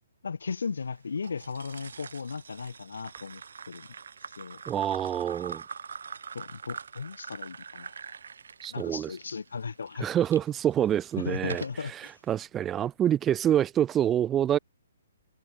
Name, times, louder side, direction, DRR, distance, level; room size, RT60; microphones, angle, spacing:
voice 1, 0.2-3.4 3.7-3.9 4.4-4.6 6.3-7.9 8.7-10.1 11.2-12.1, left 5 dB, 65° left, 3.2 m, -36 dB
sound 1, 1.2-10.4 11.0-11.9, right 6 dB, 65° right, 2.6 m, -44 dB
voice 2, 4.7-5.6 8.6-9.2 10.0-11.6 11.9-14.6, right 10 dB, 15° right, 1.0 m, -26 dB
figure-of-eight pair, 130°, 0 cm